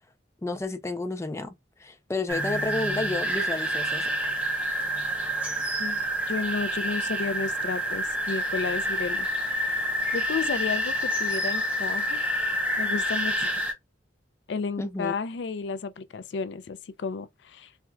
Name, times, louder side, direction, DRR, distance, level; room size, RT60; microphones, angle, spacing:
voice 1, 0.4-1.5 1.8-4.1 14.8-15.1, left 2 dB, 15° left, 0.4 m, -31 dB
sound 1, 2.3-13.7, equal, 10° right, 0.8 m, -28 dB
voice 2, 6.3-9.3 9.5-12.2 12.8-13.6 14.5-17.7, left 5 dB, 75° left, 0.4 m, -32 dB
4.3 x 2.4 x 2.3 m
head